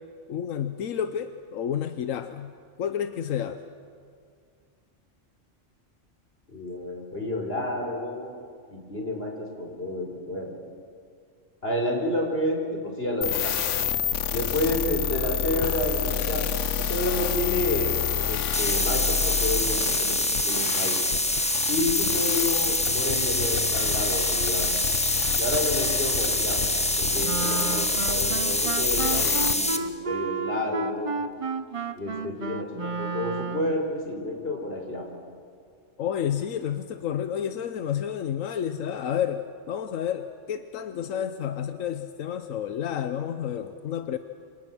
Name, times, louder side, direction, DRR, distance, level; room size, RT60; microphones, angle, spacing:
voice 1, 0.3-2.5 2.8-3.6 36.0-44.2, left 9 dB, 90° left, 9 dB, 1.2 m, -30 dB
voice 2, 6.5-8.3 8.7-10.5 11.6-13.5 14.3-17.9 18.2-21.0 21.7-24.7 25.4-31.1 31.9-35.1, left 1 dB, 50° left, 1 dB, 4.8 m, -30 dB
sound 1, 13.2-29.5, left 8 dB, 70° left, 1.2 m, -29 dB
sound 2, 18.5-29.8, left 1 dB, 5° left, 1.2 m, -26 dB
Wind instrument woodwind instrument, 27.2-33.8, right 4 dB, 30° right, 0.7 m, -32 dB
28.0 x 26.5 x 6.2 m, 2.2 s
omnidirectional pair, 1.3 m